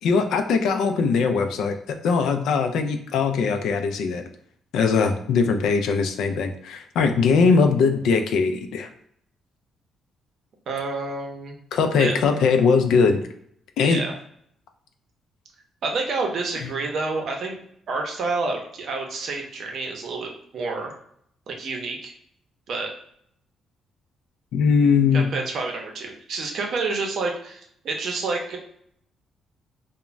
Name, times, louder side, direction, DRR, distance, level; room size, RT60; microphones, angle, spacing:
voice 1, 0.0-4.2 4.7-8.9 11.7-13.2 13.8-14.0 16.6-16.7 24.5-25.3, left 5 dB, 80° left, 5 dB, 0.3 m, -20 dB
voice 2, 10.7-11.6 12.0-12.2 13.8-14.1 15.8-17.6 17.9-20.9 21.5-22.1 22.7-22.9 25.1-28.6, right 3 dB, 65° right, 1 dB, 0.6 m, -29 dB
2.4 x 2.1 x 3.1 m, 0.69 s
cardioid pair, 90°, 0 cm